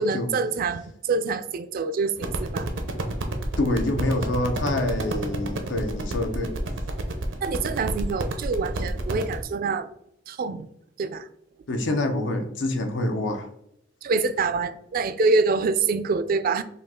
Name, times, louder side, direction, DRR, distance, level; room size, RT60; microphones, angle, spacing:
voice 1, 0.0-2.7 7.4-9.9 10.3-10.7 11.0-11.3 14.0-16.6, right 4 dB, 50° right, 0.4 m, -25 dB
sound 1, 2.2-9.4, right 2 dB, 85° right, 0.7 m, -30 dB
voice 2, 3.6-6.5 11.7-13.5, left 2 dB, 75° left, 0.7 m, -26 dB
5.3 x 2.4 x 3.6 m
head